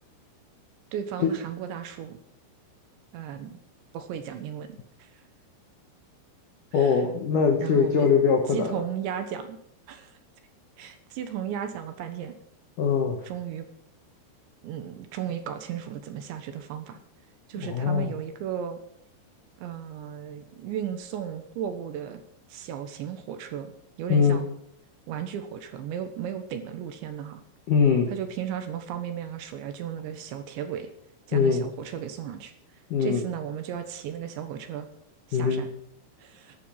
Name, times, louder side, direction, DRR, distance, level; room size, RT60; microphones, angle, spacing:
voice 1, 0.9-2.2 3.1-3.6 3.9-4.7 5.0-5.2 6.7-7.0 7.6-8.1 8.5-9.6 9.9-10.2 10.8-12.4 13.2-13.7 14.6-17.0 17.5-18.8 19.6-22.2 22.5-23.7 24.0-24.5 25.1-27.4 28.1-30.9 31.3-32.5 33.0-34.9 35.3-35.7 36.2-36.6, right 9 dB, 70° right, 8 dB, 3.3 m, -35 dB
voice 2, 6.7-8.8 12.8-13.2 17.6-18.1 24.1-24.4 27.7-28.1 31.3-31.7 32.9-33.2 35.3-35.6, left 6 dB, 70° left, 3 dB, 1.9 m, -22 dB
13.5 x 12.0 x 5.7 m, 0.68 s
omnidirectional pair, 5.8 m